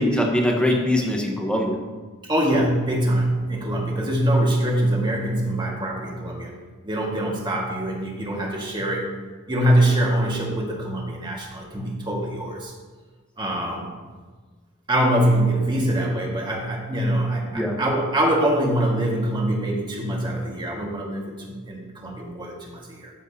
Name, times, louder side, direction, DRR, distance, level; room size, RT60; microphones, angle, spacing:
voice 1, 0.0-1.8 17.5-17.7, left 1 dB, 5° left, 0 dB, 1.2 m, -22 dB
voice 2, 2.3-6.5 6.8-9.1 9.5-12.7 13.4-14.0 14.9-23.1, right 1 dB, 20° right, -2 dB, 1.9 m, -24 dB
13.5 x 7.2 x 2.9 m, 1.4 s
head